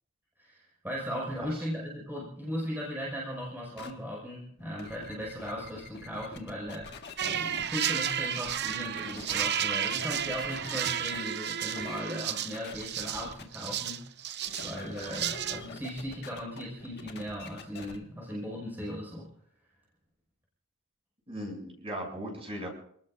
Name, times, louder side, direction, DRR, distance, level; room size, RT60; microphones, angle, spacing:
voice 1, 0.4-14.0 14.6-19.3, equal, 10° right, -5 dB, 5.8 m, -37 dB
sound 1, 3.8-3.9 4.6-7.6 8.1-9.6 9.9-10.8 11.1-11.2 11.7-12.0 12.5-13.4 14.5-18.0, left 4 dB, 50° left, 1.8 m, -46 dB
sound 2, 7.2-15.6, right 9 dB, 50° right, 0.8 m, -32 dB
voice 2, 21.3-22.7, equal, 25° right, 0 dB, 7.4 m, -38 dB
28.5 x 19.5 x 2.6 m, 0.64 s
head